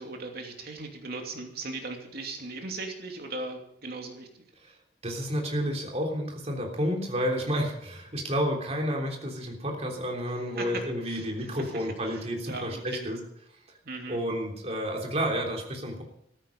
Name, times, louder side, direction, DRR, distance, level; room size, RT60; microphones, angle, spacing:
voice 1, 0.0-4.3 10.6-11.8 12.1-13.1 13.8-14.2, right 3 dB, 60° right, 2 dB, 2.8 m, -38 dB
voice 2, 5.0-13.2 14.1-16.0, equal, 35° right, 1 dB, 3.5 m, -30 dB
14.5 x 13.0 x 5.4 m, 0.75 s
head